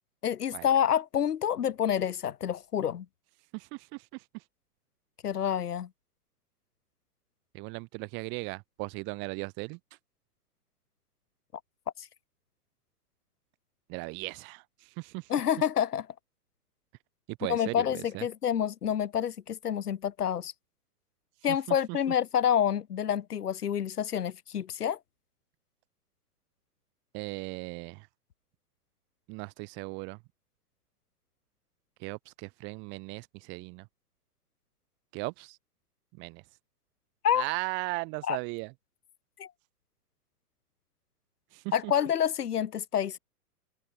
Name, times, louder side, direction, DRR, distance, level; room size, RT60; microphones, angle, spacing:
voice 1, 0.2-3.0 5.2-5.9 12.0-12.1 15.3-16.1 17.5-20.5 21.4-25.0 37.2-37.4 38.2-38.4 39.4-39.5 41.7-43.2, left 9 dB, 80° left, 1.5 m, -28 dB
voice 2, 3.5-4.2 7.5-9.8 13.9-14.6 15.0-15.3 17.3-17.8 18.1-18.2 21.5-21.6 21.9-22.0 27.1-28.1 29.3-30.2 32.0-33.9 35.1-35.6 36.2-36.4 37.3-38.7 41.5-41.9, right 30 dB, 25° right, 0.8 m, -37 dB
hypercardioid pair, 130°, 45 cm